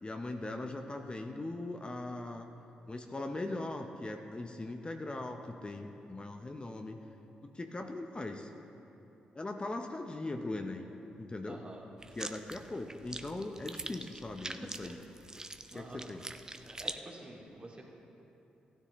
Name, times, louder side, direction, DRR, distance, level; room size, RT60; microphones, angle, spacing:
voice 1, 0.0-2.5 2.9-7.0 7.4-8.5 9.3-10.9 11.2-11.6 12.2-15.0 15.7-16.2, left 2 dB, 25° left, 4 dB, 0.7 m, -40 dB
voice 2, 11.5-11.9 14.5-14.6 14.8-14.9 15.7-16.0 16.6-17.9, right 2 dB, 35° right, -2 dB, 2.3 m, -48 dB
sound 1, 12.0-17.0, right 2 dB, 20° right, 0.6 m, -44 dB
15.5 x 10.0 x 3.1 m, 3.0 s
hypercardioid pair, 40°, 4 cm